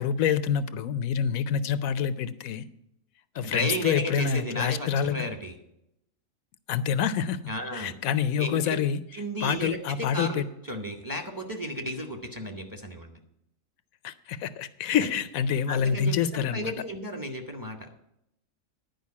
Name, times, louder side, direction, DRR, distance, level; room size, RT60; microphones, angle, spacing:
voice 1, 0.0-2.7 3.3-5.3 6.7-7.4 7.7-9.0 9.4-10.4 14.0-16.7, left 8 dB, 85° left, 14 dB, 1.1 m, -27 dB
voice 2, 3.4-5.5 7.5-7.9 8.4-8.8 9.1-13.2 15.7-17.9, equal, 15° right, 4 dB, 0.9 m, -34 dB
10.5 x 5.2 x 8.4 m, 0.79 s
omnidirectional pair, 1.4 m